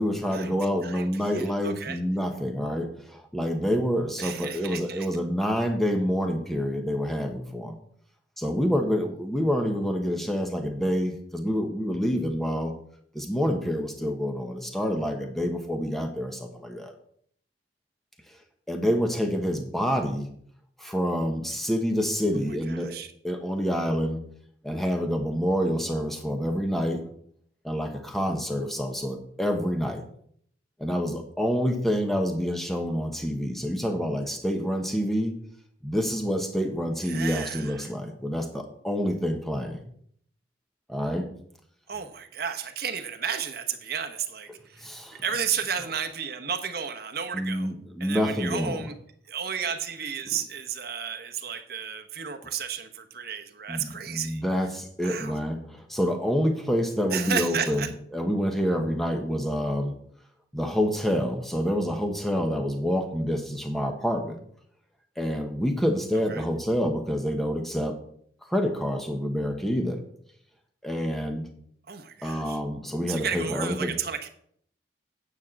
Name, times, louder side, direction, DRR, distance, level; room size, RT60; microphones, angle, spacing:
voice 1, 0.0-7.8 8.4-12.7 13.1-16.9 18.7-20.3 20.8-22.9 23.2-24.2 24.6-27.0 27.6-30.0 30.8-35.3 35.8-39.8 40.9-41.3 44.8-45.2 47.3-48.9 50.3-50.4 53.7-59.9 60.5-64.4 65.2-68.0 68.5-70.0 70.8-71.5 72.2-74.0, equal, ahead, 4 dB, 1.2 m, -27 dB
voice 2, 0.8-2.0 4.2-5.1 22.7-23.1 37.0-37.9 41.9-44.8 45.2-47.7 48.0-48.9 49.3-54.4 55.0-55.4 57.1-57.9 66.3-66.4 71.9-72.6 73.1-74.3, right 7 dB, 55° right, 6 dB, 1.0 m, -33 dB
9.4 x 4.7 x 7.5 m, 0.64 s
head